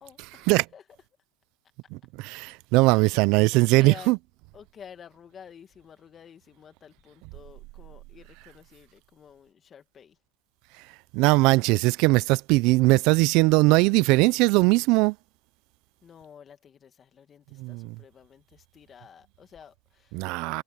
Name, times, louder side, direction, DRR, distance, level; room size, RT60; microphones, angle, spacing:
voice 1, 0.0-0.8 2.9-3.2 3.5-4.1 4.5-10.2 16.0-20.5, left 7 dB, 30° left, 2.1 m, -50 dB
voice 2, 2.2-4.2 11.1-15.1 17.6-17.9 20.1-20.6, right 23 dB, 60° right, 0.4 m, -20 dB
supercardioid pair, 120°, 0 cm